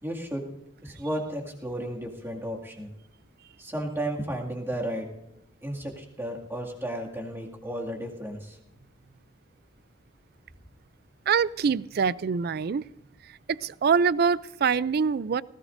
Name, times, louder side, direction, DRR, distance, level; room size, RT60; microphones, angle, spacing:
voice 1, 0.0-0.5 0.8-2.9 3.6-5.1 5.6-8.6, right 1 dB, 10° right, -1 dB, 2.2 m, -33 dB
voice 2, 11.3-12.8 13.3-15.4, right 6 dB, 55° right, 20 dB, 0.4 m, -25 dB
19.0 x 16.5 x 2.6 m, 0.86 s
head